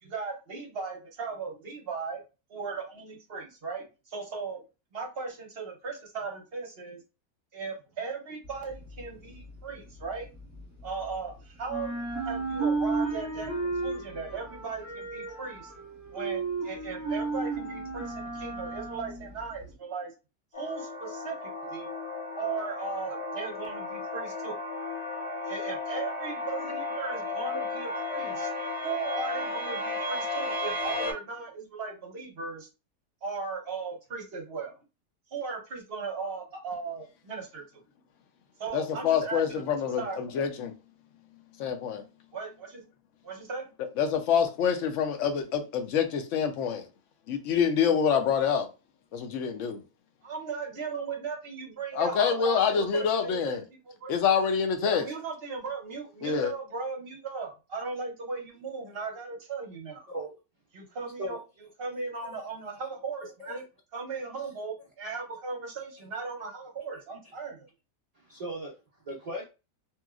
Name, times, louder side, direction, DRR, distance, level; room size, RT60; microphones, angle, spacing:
voice 1, 0.0-2.2 2.5-4.6 4.9-7.0 7.5-10.3 10.8-12.0 12.2-15.7 16.1-20.1 20.6-21.9 22.3-24.6 25.5-28.5 28.8-32.7 33.2-34.8 35.3-37.6 38.6-40.2 42.3-42.8 43.2-43.7 50.2-54.1 54.8-60.1 60.7-61.4 61.8-63.6 63.9-67.7, right 4 dB, 50° right, 0.9 m, -37 dB
sound 1, 8.4-11.3 11.6-19.7, right 3 dB, 10° right, 1.5 m, -34 dB
sound 2, 20.5-31.1, left 2 dB, 20° left, 1.2 m, -34 dB
voice 2, 38.7-40.7 41.6-42.0 44.0-46.9 47.3-48.7 49.1-49.8 52.0-53.6 54.1-55.0 56.2-56.5, left 7 dB, 65° left, 0.8 m, -26 dB
voice 3, 63.2-63.6 64.4-64.5 68.2-68.7 69.0-69.4, right 1 dB, 65° right, 0.3 m, -37 dB
2.9 x 2.7 x 2.4 m
omnidirectional pair, 1.6 m